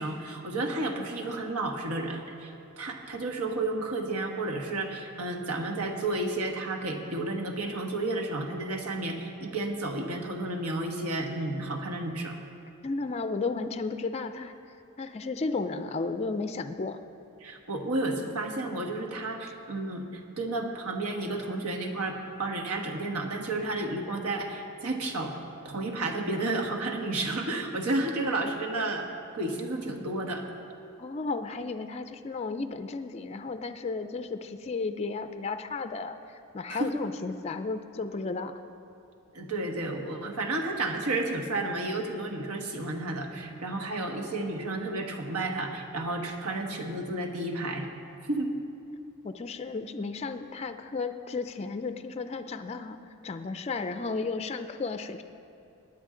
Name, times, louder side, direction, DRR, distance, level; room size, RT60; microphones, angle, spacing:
voice 1, 0.0-12.4 17.4-25.3 25.6-29.1 29.3-30.4 36.7-37.0 39.3-47.9 48.3-48.6, right 2 dB, 80° right, 3 dB, 1.3 m, -32 dB
voice 2, 12.8-14.5 15.0-17.0 31.0-38.5 49.2-53.0 53.2-55.2, left 3 dB, 30° left, 8 dB, 0.4 m, -33 dB
19.5 x 9.5 x 3.8 m, 2.6 s
head